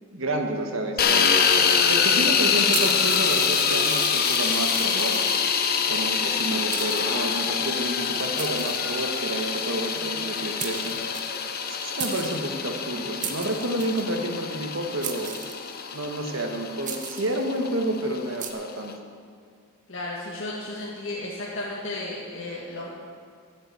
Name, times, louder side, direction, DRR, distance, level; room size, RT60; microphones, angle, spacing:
voice 1, 0.1-1.3 1.9-5.1 5.9-11.0 11.7-15.4 15.9-18.9, right 1 dB, 65° right, 3 dB, 1.6 m, -29 dB
sound 1, 1.0-18.9, left 6 dB, 45° left, 0.9 m, -25 dB
sound 2, 2.7-5.7 6.3-6.4 6.7-7.5 8.4-9.3 10.3-10.4 10.6-11.7 12.0-12.5 13.2-14.1 15.0-15.9 16.8-17.4 18.4-18.5, right 8 dB, 35° right, 1.0 m, -36 dB
voice 2, 19.9-22.9, left 2 dB, 60° left, -5 dB, 1.9 m, -34 dB
14.0 x 7.4 x 8.6 m, 2.1 s
head